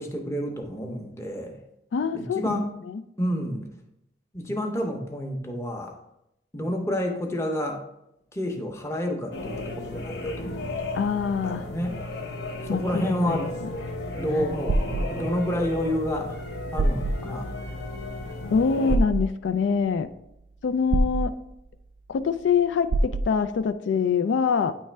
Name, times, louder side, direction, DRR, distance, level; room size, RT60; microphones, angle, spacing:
voice 1, 0.0-1.6 2.1-2.7 3.2-3.7 4.3-6.0 6.5-7.8 8.3-10.9 11.4-12.0 12.6-13.5 14.2-16.4 16.7-17.5, equal, 15° left, 2 dB, 0.7 m, -29 dB
voice 2, 1.9-2.6 2.9-3.0 10.9-11.7 12.7-13.7 18.5-20.1 20.6-21.3 22.1-24.7, left 6 dB, 90° left, 10 dB, 0.3 m, -25 dB
sound 1, 9.3-19.0, left 2 dB, 70° left, 0.8 m, -34 dB
sound 2, 14.3-15.1 16.4-16.5 16.8-17.2 18.9-19.2 20.9-21.3 22.9-23.3, right 2 dB, 75° right, 0.3 m, -23 dB
9.3 x 3.2 x 3.3 m, 0.83 s
head